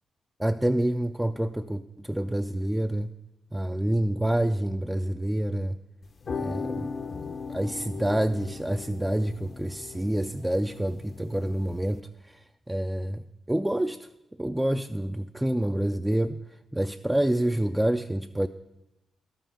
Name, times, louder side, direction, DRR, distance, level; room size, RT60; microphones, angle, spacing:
voice 1, 0.4-3.1 3.5-5.8 6.4-6.9 7.5-14.1 14.4-16.4 16.7-18.5, right 1 dB, 10° right, 7 dB, 0.3 m, -27 dB
sound 1, 6.0-12.0, left 5 dB, 50° left, 0.6 m, -38 dB
12.0 x 5.7 x 7.0 m, 0.96 s
cardioid pair, 85°, 0 cm